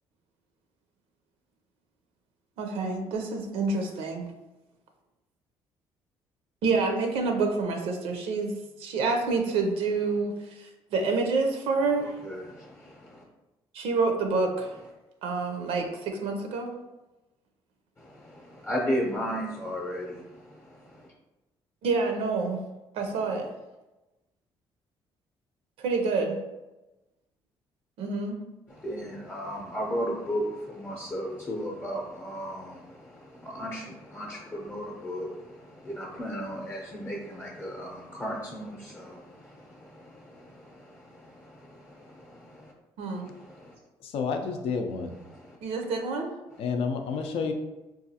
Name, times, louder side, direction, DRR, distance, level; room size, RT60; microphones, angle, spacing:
voice 1, 2.6-4.3 6.6-8.5 8.8-12.1 13.7-14.7 15.2-16.7 21.8-22.6 22.9-23.5 25.8-26.4 28.0-28.4 43.0-43.3 45.6-46.3, right 4 dB, 85° right, 3 dB, 0.5 m, -28 dB
voice 2, 12.0-13.2 18.0-21.1 28.7-42.7 43.1-43.7 45.3-45.6 47.2-47.3, equal, 25° left, -1 dB, 0.6 m, -36 dB
voice 3, 44.0-45.1 46.6-47.5, left 5 dB, 75° left, 5 dB, 0.5 m, -30 dB
4.0 x 2.4 x 2.7 m, 1.0 s
cardioid pair, 100°, 10 cm